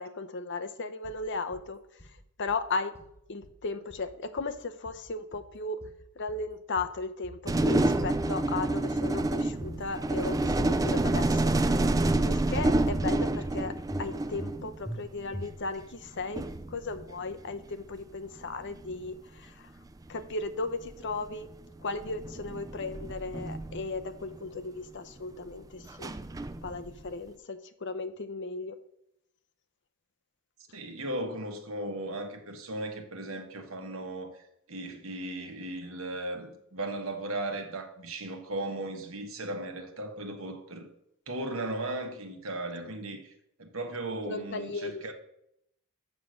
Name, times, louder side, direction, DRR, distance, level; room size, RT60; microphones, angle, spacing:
voice 1, 0.0-1.8 2.4-2.9 3.3-5.8 6.2-11.5 12.2-16.4 16.7-19.7 20.1-21.5 21.8-26.1 26.6-28.8 44.3-45.1, left 3 dB, 55° left, 0.7 m, -36 dB
sound 1, 1.0-1.7 2.0-2.6 3.0-3.6 3.9-4.6 4.9-5.5 5.8-6.5 6.8-7.5 7.7-8.4 8.7-9.4 9.6-10.3 10.6-11.2 11.5-12.2 12.5-13.1 13.4-13.5 13.9-14.6 14.9-15.0 15.3-15.8, equal, 10° left, 0.8 m, -43 dB
sound 2, 7.5-14.9 16.1-16.2 16.3-17.7 18.8-19.1 20.2-20.3 20.8-21.1 22.0-24.4 25.8-27.1, right 2 dB, 15° right, 0.3 m, -28 dB
voice 2, 30.7-40.9 41.3-43.3 43.6-45.1, right 1 dB, 70° right, 1.4 m, -36 dB
7.4 x 6.0 x 6.4 m
head